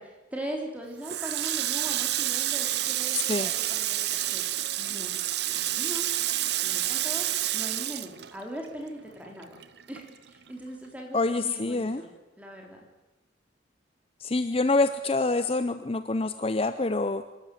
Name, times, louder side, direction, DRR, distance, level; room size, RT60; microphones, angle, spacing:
voice 1, 0.0-4.4 4.8-5.1 5.5-6.0 6.6-7.3 7.5-9.6 9.9-12.1 12.4-12.8, right 1 dB, 10° right, 1 dB, 3.6 m, -40 dB
Water tap faucet, 1.0-8.9 9.2-10.5, right 13 dB, 60° right, 0.8 m, -29 dB
voice 2, 3.1-3.5 11.1-12.0 14.2-17.2, left 3 dB, 30° left, 11 dB, 0.6 m, -26 dB
25.0 x 13.5 x 9.2 m, 1.1 s
head